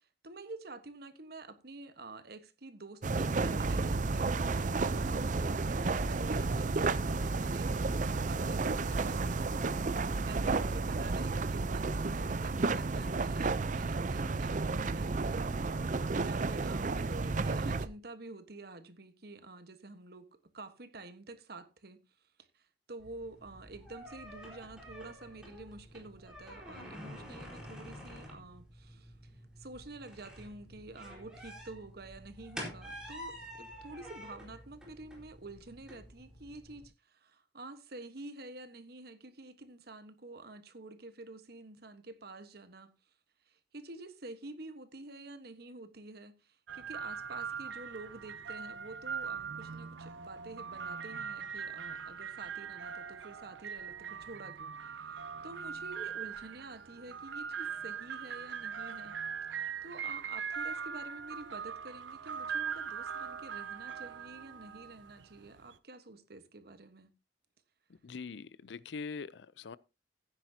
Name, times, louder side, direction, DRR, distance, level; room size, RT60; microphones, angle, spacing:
voice 1, 0.0-15.5 15.9-22.0 22.4-42.9 43.5-59.2 59.5-67.1, right 2 dB, 60° right, 1.3 m, -49 dB
sound 1, 3.0-17.9, right 3 dB, 45° right, 0.6 m, -32 dB
sound 2, 23.0-36.8, equal, 5° right, 4.4 m, -49 dB
sound 3, 46.7-65.8, right 7 dB, 85° right, 0.6 m, -41 dB
voice 2, 67.9-69.8, left 5 dB, 75° left, 0.5 m, -43 dB
15.0 x 10.0 x 2.8 m
head